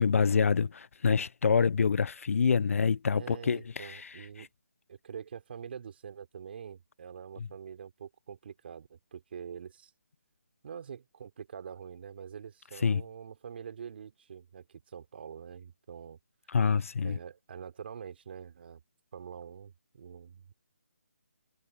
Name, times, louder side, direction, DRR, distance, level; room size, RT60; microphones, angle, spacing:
voice 1, 0.0-4.1 4.4-4.5 12.8-13.0 16.5-17.2, left 6 dB, 60° left, 0.3 m, -26 dB
voice 2, 3.1-4.5 4.9-9.9 10.6-16.2 17.0-18.8 19.1-20.5, right 7 dB, 40° right, 3.2 m, -45 dB
hypercardioid pair, 165°, 8 cm